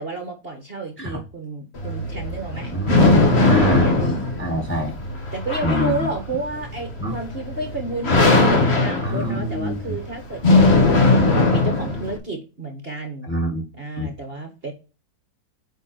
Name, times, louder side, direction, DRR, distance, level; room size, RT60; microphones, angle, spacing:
voice 1, 0.0-2.7 3.2-4.0 5.3-13.3 13.7-14.7, right 2 dB, 35° right, 1.6 m, -31 dB
sound 1, 1.7-12.2, left 3 dB, 35° left, 1.7 m, -19 dB
voice 2, 2.7-3.2 3.5-4.9 5.6-6.1 7.0-7.2 9.0-10.0 13.2-13.6 14.0-14.1, equal, 5° left, 1.5 m, -25 dB
9.1 x 3.9 x 4.3 m
omnidirectional pair, 2.1 m